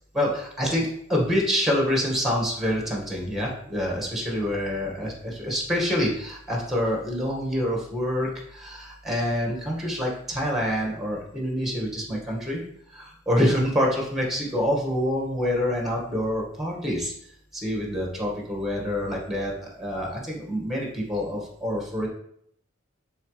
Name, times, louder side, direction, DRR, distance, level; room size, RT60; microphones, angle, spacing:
voice 1, 0.1-12.6 12.9-17.1 17.5-22.1, equal, ahead, -1 dB, 1.8 m, -26 dB
11.5 x 4.0 x 3.4 m, 0.68 s
head